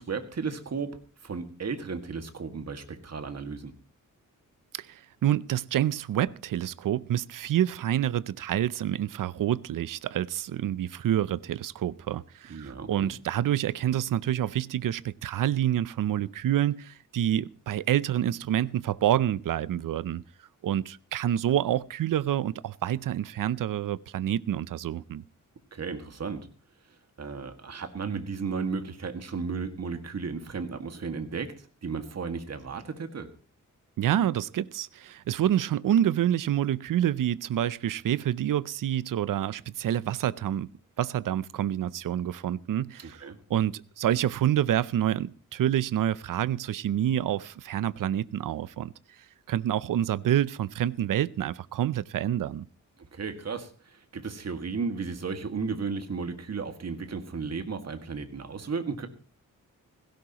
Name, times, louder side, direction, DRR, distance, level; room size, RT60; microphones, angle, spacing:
voice 1, 0.0-3.7 12.5-13.1 25.7-26.5 27.2-33.3 43.0-43.4 53.0-59.1, right 5 dB, 50° right, 2.0 m, -34 dB
voice 2, 4.7-20.2 20.6-25.2 34.0-40.7 41.0-43.2 43.5-48.9 49.5-52.6, right 11 dB, 70° right, 0.6 m, -27 dB
16.5 x 16.5 x 3.0 m
wide cardioid pair, 110°, 33 cm